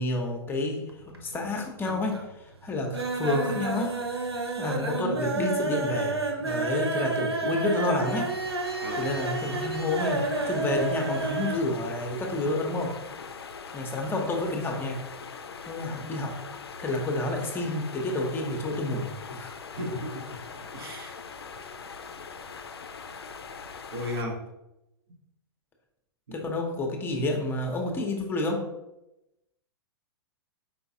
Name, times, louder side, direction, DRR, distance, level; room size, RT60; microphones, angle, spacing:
voice 1, 0.0-2.3 2.6-3.9 4.6-8.3 8.9-12.9 13.7-15.0 15.7-16.4 16.8-19.6 26.3-28.6, left 2 dB, 15° left, 1 dB, 0.7 m, -29 dB
sound 1, 0.9-1.5 1.8-2.3 2.6-11.7 11.9-12.0 12.4-12.5, right 3 dB, 90° right, 0.6 m, -30 dB
sound 2, 8.1-24.2, left 5 dB, 80° left, 0.4 m, -42 dB
voice 2, 19.7-20.4 20.7-21.1 23.9-24.4, left 1 dB, 65° right, 1 dB, 1.1 m, -34 dB
4.8 x 3.8 x 2.7 m, 0.93 s
figure-of-eight pair, 110°, 13 cm